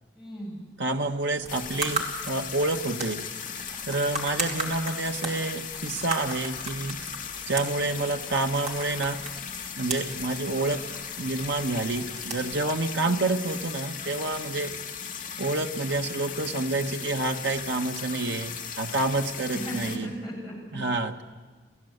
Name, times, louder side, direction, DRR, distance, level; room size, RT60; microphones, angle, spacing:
voice 1, 0.1-0.7 19.5-20.8, equal, ahead, -3 dB, 7.8 m, -36 dB
voice 2, 0.8-3.2 3.9-7.0 7.5-9.2 9.8-10.8 11.2-14.7 15.4-20.1 20.7-21.2, right 2 dB, 80° right, 5 dB, 1.4 m, -28 dB
sound 1, 1.3-13.8, right 3 dB, 40° right, 2.7 m, -38 dB
sound 2, 1.5-20.0, left 7 dB, 45° left, 2.4 m, -37 dB
28.5 x 15.5 x 8.0 m, 1.3 s
head